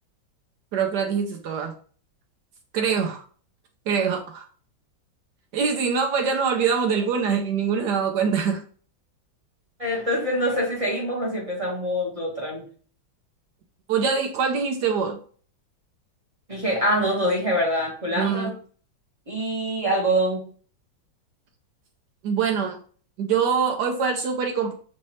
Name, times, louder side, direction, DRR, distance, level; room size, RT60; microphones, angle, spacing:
voice 1, 0.7-1.7 2.7-3.2 3.9-4.5 5.5-8.6 13.9-15.2 18.2-18.5 22.2-22.8 23.2-24.7, right 6 dB, 70° right, 4 dB, 1.1 m, -24 dB
voice 2, 9.8-12.6 16.5-18.5 19.3-20.4, equal, 20° right, -3 dB, 1.2 m, -25 dB
6.0 x 2.7 x 3.1 m, 0.44 s
omnidirectional pair, 2.2 m